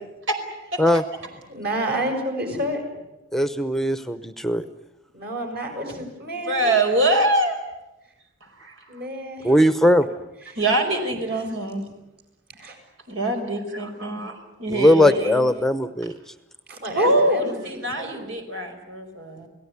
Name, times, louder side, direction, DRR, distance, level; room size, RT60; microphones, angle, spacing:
voice 1, 1.5-2.8 5.1-6.8 8.9-9.7 10.4-10.6 11.4-11.5 12.6-12.8 16.7-18.3, right 1 dB, 55° right, 3 dB, 7.9 m, -30 dB
voice 2, 3.3-4.6 9.4-10.1 14.7-16.1, left 1 dB, ahead, 11 dB, 0.8 m, -19 dB
voice 3, 6.4-7.6 8.4-8.8 10.6-11.8 13.1-15.5 16.9-19.5, right 1 dB, 85° right, 4 dB, 5.0 m, -24 dB
28.5 x 18.0 x 9.7 m, 0.97 s
head